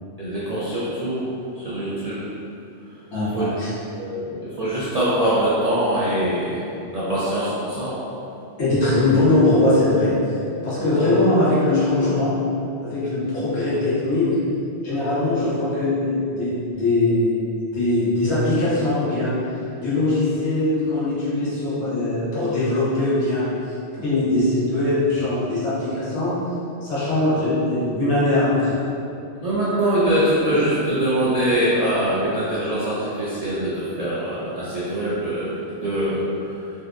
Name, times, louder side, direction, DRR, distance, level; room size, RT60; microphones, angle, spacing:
voice 1, 0.2-1.3 1.6-2.2 3.3-3.5 4.0-6.6 6.9-8.0 10.8-10.9 29.4-36.6, right 1 dB, 60° right, -9 dB, 0.4 m, -23 dB
voice 2, 3.1-3.7 8.6-10.4 10.6-12.4 12.8-14.3 14.8-17.3 17.7-19.3 19.8-23.4 24.0-26.4 26.8-28.7, left 2 dB, 80° left, -10 dB, 1.3 m, -21 dB
3.9 x 2.2 x 2.4 m, 2.7 s
omnidirectional pair, 1.2 m